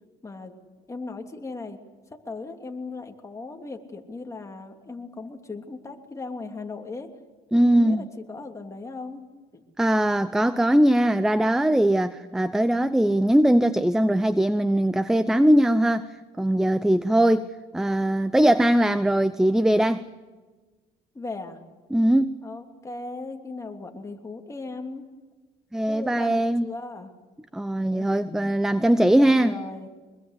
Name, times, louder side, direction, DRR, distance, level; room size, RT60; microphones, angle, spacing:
voice 1, 0.2-0.5 0.9-1.8 2.1-7.1 7.7-9.3 9.5-9.6 21.1-21.6 22.4-25.0 25.9-27.1 27.9-28.6 29.1-29.9, left 3 dB, 20° left, 3.0 m, -37 dB
voice 2, 7.5-8.1 9.8-16.1 16.4-17.5 17.7-20.0 21.9-22.3 25.7-26.6 27.5-29.5, right 1 dB, 5° right, 0.7 m, -20 dB
24.5 x 21.5 x 8.3 m
cardioid pair, 110°, 17 cm